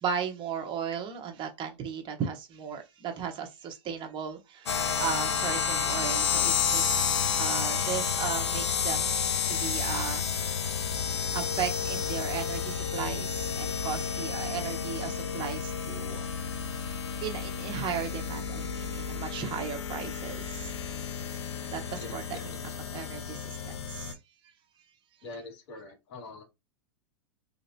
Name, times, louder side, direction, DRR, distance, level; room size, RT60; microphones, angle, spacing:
voice 1, 0.0-7.0 7.4-9.1 9.5-10.3 11.3-16.2 16.6-16.8 17.2-20.7 21.7-22.5 22.9-24.2, right 7 dB, 35° right, 1.1 m, -36 dB
sound 1, 4.7-24.1, left 7 dB, 85° left, 0.6 m, -31 dB
voice 2, 21.9-22.6 25.2-26.4, left 3 dB, 60° left, 1.9 m, -44 dB
3.2 x 2.8 x 2.7 m
hypercardioid pair, 105°, 14 cm